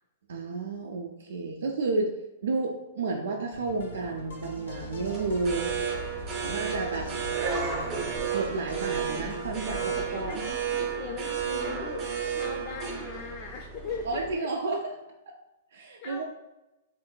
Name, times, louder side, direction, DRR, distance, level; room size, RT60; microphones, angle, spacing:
voice 1, 0.3-2.1 2.4-5.7 6.5-7.1 8.3-10.4 14.1-14.9 15.7-16.2, right 3 dB, 80° right, 1 dB, 0.3 m, -31 dB
sound 1, 3.5-10.5, left 2 dB, 90° left, 0.6 m, -42 dB
sound 2, 4.8-14.4, right 6 dB, 25° right, 0.6 m, -32 dB
voice 2, 10.7-14.5 16.0-16.2, left 4 dB, 40° left, 1 dB, 0.3 m, -39 dB
2.9 x 2.4 x 2.2 m, 0.98 s
hypercardioid pair, 140°, 0 cm